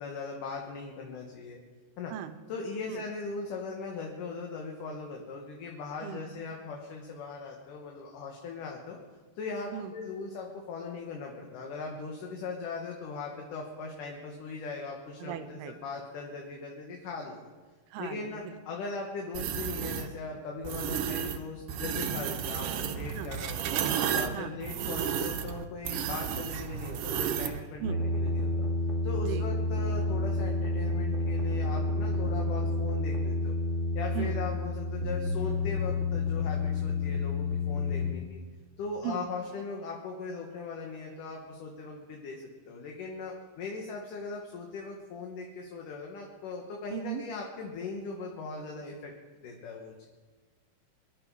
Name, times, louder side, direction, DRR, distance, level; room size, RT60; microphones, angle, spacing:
voice 1, 0.0-1.6 2.0-2.1 2.5-9.0 9.4-17.4 18.0-23.8 24.1-28.5 29.0-33.5 33.9-38.4 38.8-49.1 49.4-50.1, left 4 dB, 65° left, 0 dB, 2.8 m, -39 dB
voice 2, 15.2-15.7 17.9-18.2 18.5-18.6 23.1-23.3 24.3-24.5 27.8-28.0 29.2-29.5 34.1-34.4 39.0-39.2 46.9-47.2, right 10 dB, 90° right, 10 dB, 2.8 m, -37 dB
sound 1, 19.3-20.1 20.6-21.4 21.7-27.6, right 8 dB, 70° right, 2.2 m, -32 dB
sound 2, 27.8-38.1, left 2 dB, 25° left, 2.1 m, -29 dB
24.5 x 12.0 x 4.8 m, 1.3 s
omnidirectional pair, 4.5 m